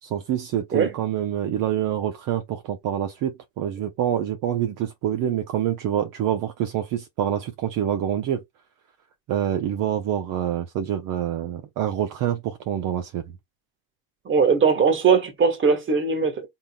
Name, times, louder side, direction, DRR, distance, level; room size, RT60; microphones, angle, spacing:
voice 1, 0.0-8.4 9.3-13.2, right 10 dB, 50° right, 0.9 m, -26 dB
voice 2, 14.2-16.5, right 5 dB, 30° right, 1.6 m, -20 dB
3.9 x 3.7 x 2.3 m
supercardioid pair, 110°, 40 cm